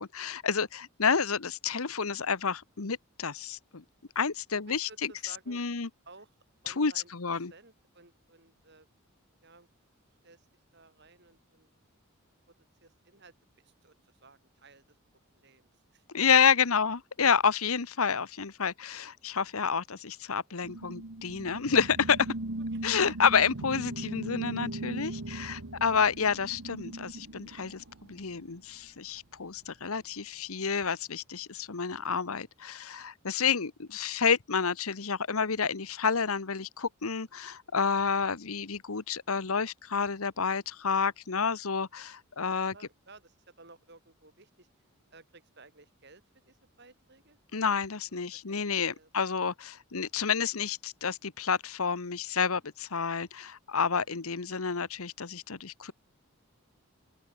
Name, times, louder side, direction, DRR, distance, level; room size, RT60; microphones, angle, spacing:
voice 1, 0.0-3.8 4.1-5.1 5.5-5.9 6.7-7.5 16.1-22.3 22.8-27.8 28.1-42.7 47.5-55.9, left 6 dB, 80° left, 1.1 m, -29 dB
voice 2, 4.7-5.6 6.0-6.3 6.6-8.9 9.4-9.7 10.2-10.5 10.7-11.7 12.8-15.0 15.3-16.0 22.6-22.8 33.5-33.6 42.4-44.7 45.1-47.4 48.1-48.6 48.9-49.1, right 3 dB, 50° right, 5.0 m, -56 dB
sound 1, 20.6-28.4, right 2 dB, 90° right, 1.6 m, -39 dB
open air
head